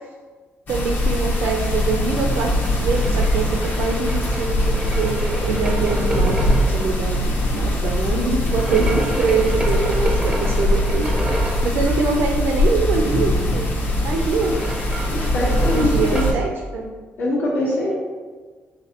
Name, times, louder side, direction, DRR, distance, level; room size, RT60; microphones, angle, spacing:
sound 1, 0.7-16.3, left 1 dB, 50° left, 0.9 m, -21 dB
voice 1, 0.7-3.5 3.7-11.1 11.6-13.7 14.0-14.6 15.3-16.9, right 5 dB, 75° right, 1 dB, 0.5 m, -24 dB
sound 2, 2.3-6.8 8.5-11.7 13.8-16.4, right 1 dB, 15° right, 0.5 m, -30 dB
voice 2, 15.1-16.3 17.2-17.9, left 1 dB, 70° left, -11 dB, 1.3 m, -23 dB
5.0 x 3.4 x 2.9 m, 1.4 s
cardioid pair, 140°, 4 cm